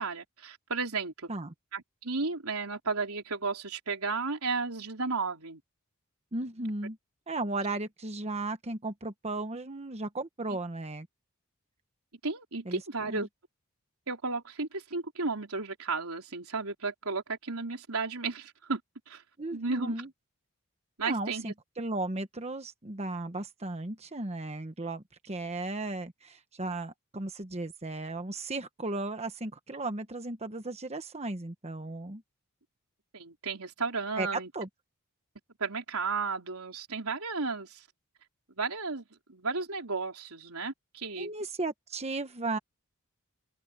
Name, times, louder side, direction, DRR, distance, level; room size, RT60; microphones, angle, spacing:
voice 1, 0.0-1.3 1.7-5.6 12.2-13.3 14.1-18.8 19.1-19.2 19.5-20.0 21.0-21.5 33.1-34.5 35.6-37.8 38.6-39.0 39.3-41.3, right 4 dB, 90° right, 3.8 m, -33 dB
voice 2, 6.3-7.0 7.3-11.1 12.6-13.3 19.4-20.1 21.0-32.2 34.2-34.7 41.2-42.6, right 2 dB, 30° right, 1.1 m, -35 dB
open air
head